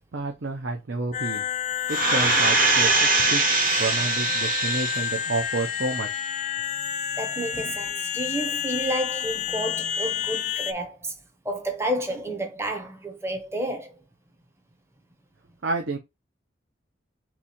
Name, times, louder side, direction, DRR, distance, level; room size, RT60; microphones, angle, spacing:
voice 1, 0.1-1.4 1.9-3.4 3.8-6.2 15.6-16.0, right 3 dB, 75° right, 0.7 m, -30 dB
sound 1, 1.1-10.7, left 9 dB, 40° left, 0.3 m, -29 dB
sound 2, 1.9-5.3 5.7-5.8, right 3 dB, 45° right, 1.1 m, -22 dB
voice 2, 7.2-11.1 11.4-13.9, right 1 dB, 15° right, 0.7 m, -30 dB
3.6 x 3.0 x 4.2 m
head